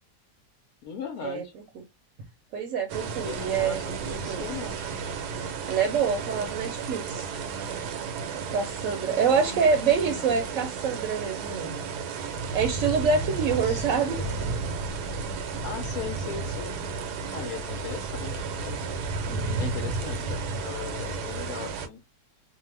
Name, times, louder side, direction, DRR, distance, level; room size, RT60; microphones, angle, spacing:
voice 1, 0.8-1.5 3.0-4.8 9.4-10.4 13.5-14.4 15.6-16.8 17.3-18.8 19.6-22.0, left 7 dB, 70° left, 1.0 m, -39 dB
voice 2, 2.5-3.8 4.3-4.4 5.7-7.3 8.5-11.8 12.5-14.2 19.3-19.6, right 6 dB, 65° right, 0.9 m, -26 dB
sound 1, 2.9-21.9, right 4 dB, 85° right, 1.2 m, -33 dB
2.7 x 2.1 x 3.1 m
omnidirectional pair, 1.7 m